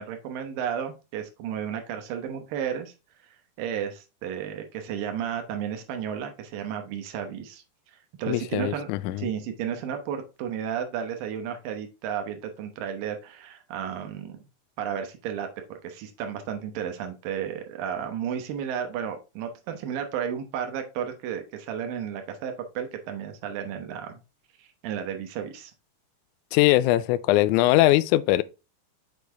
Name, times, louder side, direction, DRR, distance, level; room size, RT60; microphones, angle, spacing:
voice 1, 0.0-2.9 3.6-7.6 8.2-8.9 9.2-14.4 14.8-24.2 24.6-25.7, right 8 dB, 85° right, 2.7 m, -33 dB
voice 2, 8.3-9.3 26.5-28.4, left 16 dB, 85° left, 1.7 m, -21 dB
6.5 x 5.2 x 3.4 m
omnidirectional pair, 3.9 m